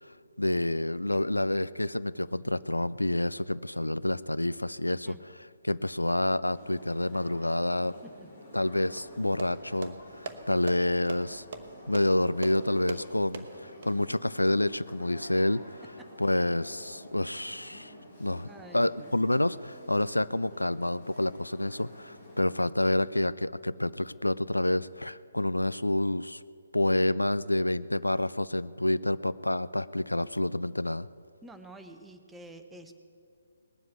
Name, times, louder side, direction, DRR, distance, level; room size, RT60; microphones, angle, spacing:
voice 1, 0.0-8.0 8.5-11.4 11.9-15.8 16.2-17.9 18.2-18.5 18.7-26.4 26.7-31.1, left 1 dB, 80° left, 17 dB, 0.3 m, -28 dB
sound 1, 6.5-22.4, left 1 dB, 45° left, 4.0 m, -50 dB
sound 2, 9.0-13.9, right 4 dB, 45° right, 1.0 m, -42 dB
voice 2, 18.5-19.3 31.4-32.9, right 2 dB, 5° right, 6 dB, 0.8 m, -49 dB
19.0 x 7.7 x 8.3 m, 2.4 s
figure-of-eight pair, 135°, 0 cm